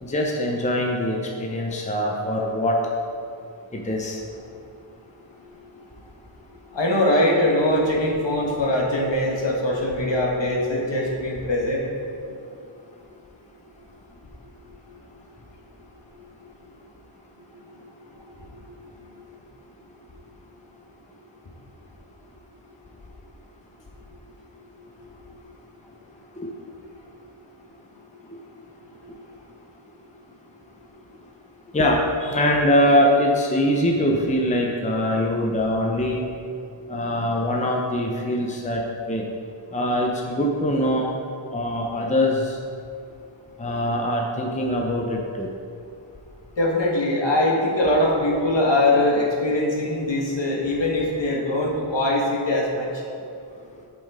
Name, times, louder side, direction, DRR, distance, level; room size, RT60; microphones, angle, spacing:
voice 1, 0.0-2.8 3.7-4.2 26.4-26.5 31.7-36.2 36.9-39.2 39.7-41.1 41.5-42.6 43.6-45.5, left 1 dB, 15° left, -1 dB, 0.7 m, -23 dB
voice 2, 6.7-11.8 46.6-53.0, left 1 dB, 60° left, -2 dB, 1.4 m, -22 dB
8.5 x 5.5 x 3.6 m, 2.4 s
wide cardioid pair, 80°, 49 cm